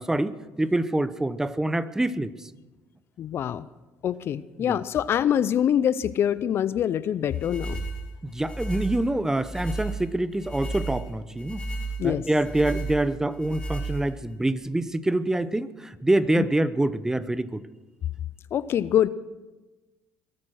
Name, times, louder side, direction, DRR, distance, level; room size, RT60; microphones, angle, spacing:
voice 1, 0.0-2.3 4.6-4.8 8.3-11.6 12.0-17.6, right 1 dB, 10° right, 15 dB, 0.8 m, -26 dB
voice 2, 3.2-3.7 4.0-7.8 12.0-12.3 16.4-16.5 18.5-19.1, left 10 dB, 50° left, 17 dB, 0.5 m, -24 dB
sound 1, 7.3-14.4, right 2 dB, 15° left, 5.0 m, -34 dB
22.5 x 8.6 x 6.3 m, 1.1 s
supercardioid pair, 80°, 5 cm